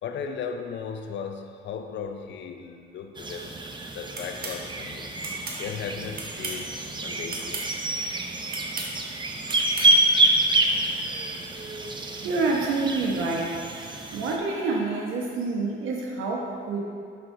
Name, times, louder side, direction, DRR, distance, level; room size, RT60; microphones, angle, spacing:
voice 1, 0.0-3.6 3.9-5.1 5.6-7.7, left 6 dB, 65° left, 6 dB, 0.6 m, -36 dB
sound 1, 3.1-14.4, right 2 dB, 25° right, 0.6 m, -27 dB
sound 2, 4.1-4.6 5.2-5.6 6.1-6.7 7.3-7.7 8.5-8.9 9.5-9.9, right 3 dB, 50° right, 1.3 m, -35 dB
voice 2, 12.2-13.9 14.1-16.8, right 3 dB, 90° right, -1 dB, 1.1 m, -27 dB
6.2 x 5.8 x 3.8 m, 2.3 s
cardioid pair, 90°, 20 cm